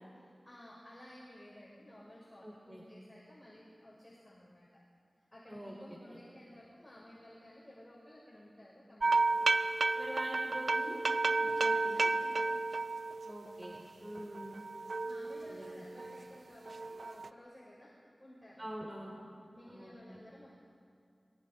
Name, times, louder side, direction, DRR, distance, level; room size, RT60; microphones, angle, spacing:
voice 1, 0.1-4.8 5.3-9.4 11.3-12.6 15.0-17.9 18.2-18.7 19.5-20.6, left 1 dB, 25° left, -6 dB, 7.6 m, -55 dB
voice 2, 2.4-2.8 5.5-5.8 6.1-6.2 9.9-11.0 11.4-12.1 13.2-14.6 15.5-15.8 18.6-19.1 19.7-20.2, equal, 25° right, -2 dB, 4.5 m, -45 dB
sound 1, 9.0-13.8 14.2-16.2 16.7-17.3, right 3 dB, 75° right, 0.8 m, -32 dB
27.5 x 24.5 x 5.4 m, 2.3 s
cardioid pair, 45°, 0 cm